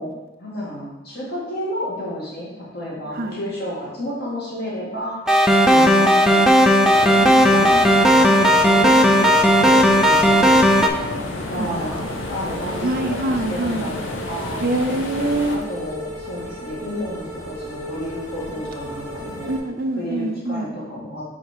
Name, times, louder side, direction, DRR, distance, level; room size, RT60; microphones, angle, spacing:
voice 1, 0.0-7.9 8.2-11.2 11.5-12.0 12.3-14.6 15.4-19.5 19.9-21.2, left 1 dB, 55° left, -6 dB, 2.3 m, -31 dB
sound 1, 5.3-10.9, equal, 5° right, 0.4 m, -14 dB
voice 2, 5.7-6.8 11.6-11.7 12.8-13.9 14.6-15.6 19.5-20.7, right 1 dB, 50° right, 5 dB, 0.6 m, -25 dB
sound 2, 6.9-15.6, left 2 dB, 75° left, 0.8 m, -31 dB
sound 3, 10.7-19.6, equal, 15° left, 1.6 m, -36 dB
5.0 x 4.9 x 4.5 m, 1.0 s
head